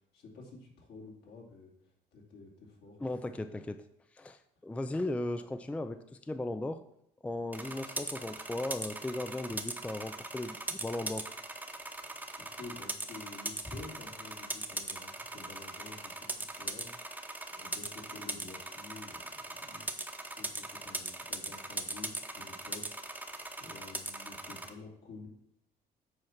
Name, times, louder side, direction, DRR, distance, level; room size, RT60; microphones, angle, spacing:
voice 1, 0.1-1.7 2.1-3.0 12.0-17.0 17.6-19.9 20.2-22.9 23.2-25.3, left 3 dB, 70° left, -1 dB, 2.5 m, -50 dB
voice 2, 3.0-3.8 4.1-6.8 7.2-11.3, left 2 dB, 5° left, 10 dB, 0.4 m, -37 dB
sound 1, 7.5-24.7, right 2 dB, 10° right, 0.9 m, -40 dB
7.8 x 4.5 x 5.8 m, 0.77 s
cardioid pair, 110°, 17 cm